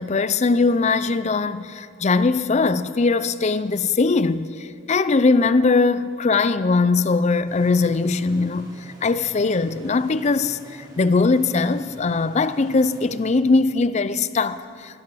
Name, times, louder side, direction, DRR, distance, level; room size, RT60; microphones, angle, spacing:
voice 1, 0.0-10.6 11.0-15.0, left 3 dB, 35° left, 0.4 m, -20 dB
sound 1, 7.5-14.0, equal, 20° right, 2.7 m, -46 dB
15.0 x 13.0 x 7.5 m
head